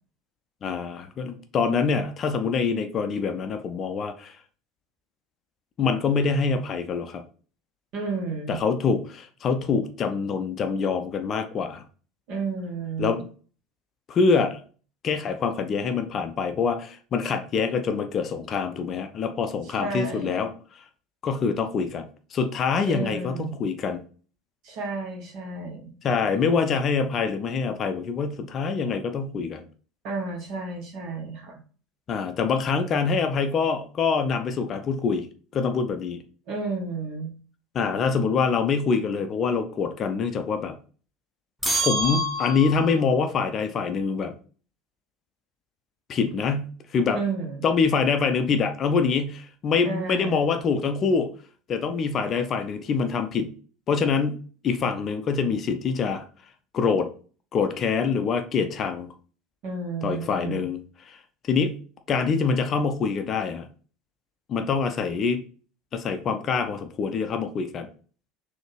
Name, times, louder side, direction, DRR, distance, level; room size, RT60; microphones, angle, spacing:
voice 1, 0.6-4.4 5.8-7.2 8.5-11.8 13.0-13.2 14.1-14.6 15.0-20.5 21.2-24.0 26.0-29.6 32.1-35.3 35.5-36.2 37.7-40.8 41.8-44.3 46.1-47.2 47.6-51.3 51.7-53.5 53.9-54.4 54.6-56.3 56.7-57.1 57.5-59.1 60.0-61.2 61.5-61.8 62.1-63.7 64.5-65.4 65.9-67.9, left 5 dB, 35° left, 8 dB, 0.5 m, -25 dB
voice 2, 7.9-8.6 12.3-13.2 19.6-20.5 22.8-23.6 24.6-25.9 30.0-31.6 36.5-37.3 47.1-47.6 49.8-50.4 59.6-60.6, right 4 dB, 50° right, 0 dB, 1.5 m, -32 dB
sound 1, 41.6-43.0, equal, ahead, 0.9 m, -26 dB
4.0 x 2.8 x 3.4 m, 0.40 s
figure-of-eight pair, 70°, 0 cm